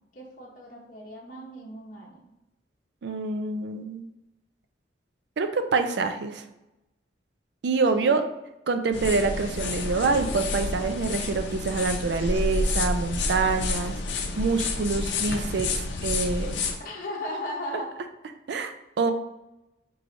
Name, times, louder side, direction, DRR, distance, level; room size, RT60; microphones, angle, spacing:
voice 1, 0.1-2.2 7.9-8.4 16.8-17.9, left 1 dB, 50° left, -3 dB, 0.8 m, -37 dB
voice 2, 3.0-4.1 5.4-6.4 7.6-8.3 8.7-14.0 14.4-16.6 18.5-19.1, right 4 dB, 70° right, 8 dB, 0.4 m, -26 dB
sound 1, 8.9-16.8, left 3 dB, 80° left, 0.5 m, -29 dB
4.7 x 3.1 x 2.5 m, 0.91 s
head